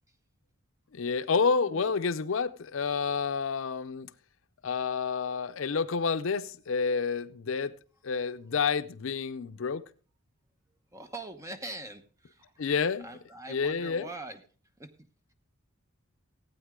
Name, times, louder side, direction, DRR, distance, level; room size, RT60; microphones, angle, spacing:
voice 1, 0.9-4.1 4.6-7.8 8.0-9.8 12.6-13.1 13.5-14.1, left 5 dB, 65° left, 0.5 m, -29 dB
voice 2, 10.9-12.6 13.0-14.4 14.8-14.9, right 2 dB, 15° right, 0.9 m, -43 dB
15.5 x 8.8 x 3.6 m
head